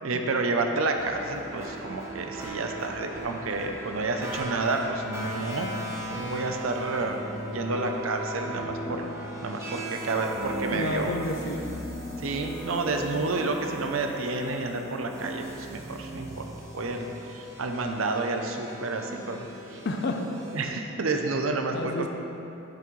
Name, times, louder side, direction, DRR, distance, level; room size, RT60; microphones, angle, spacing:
voice 1, 0.0-5.7 6.1-7.2 7.5-9.1 9.4-11.1 12.2-16.4 16.7-19.5 19.7-19.8 20.5-22.1, right 3 dB, 85° right, 4 dB, 0.6 m, -30 dB
sound 1, 1.0-20.7, right 1 dB, 15° right, 0.8 m, -38 dB
voice 2, 10.7-11.6 19.8-20.2 21.7-22.1, left 2 dB, 55° left, 4 dB, 0.6 m, -30 dB
8.9 x 5.9 x 3.2 m, 2.9 s
head